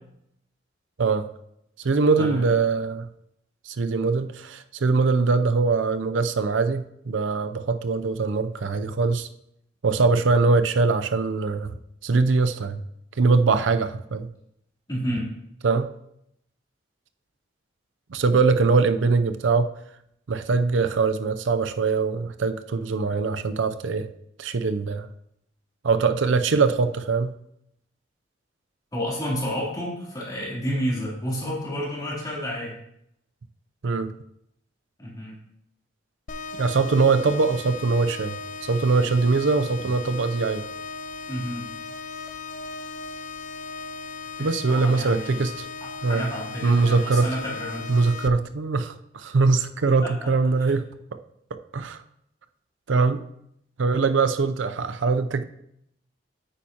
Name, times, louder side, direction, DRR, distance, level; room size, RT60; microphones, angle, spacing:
voice 1, 1.8-3.1 3.7-9.3 9.8-11.8 12.0-12.8 13.2-14.3 15.6-15.9 18.1-19.7 20.3-24.1 24.4-25.1 25.8-27.4 33.8-34.1 36.6-40.7 44.4-45.7 46.0-46.3 46.6-47.3 47.9-50.9 51.1-51.2 51.5-52.0 52.9-53.2 53.8-55.4, right 4 dB, 85° right, 10 dB, 0.5 m, -22 dB
voice 2, 14.9-15.3 28.9-32.8 35.0-35.4 41.3-41.7 44.4-45.5 45.8-48.1 49.3-49.4 49.8-50.3 50.6-50.7, equal, 20° left, -5 dB, 3.1 m, -31 dB
sound 1, 36.3-48.3, left 4 dB, 40° left, 0.4 m, -37 dB
9.1 x 8.8 x 2.9 m, 0.76 s
head